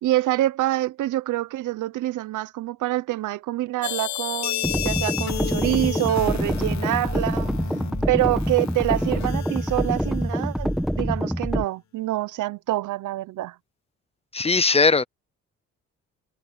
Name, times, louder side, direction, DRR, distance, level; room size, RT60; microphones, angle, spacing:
voice 1, 0.0-7.5 8.1-13.5, right 16 dB, 80° right, 0.9 m, -26 dB
sound 1, 3.8-10.5, left 12 dB, 65° left, 1.2 m, -33 dB
sound 2, 4.6-11.6, equal, ahead, 1.2 m, -26 dB
voice 2, 14.3-15.0, left 4 dB, 20° left, 0.6 m, -19 dB
cardioid pair, 90°, 30 cm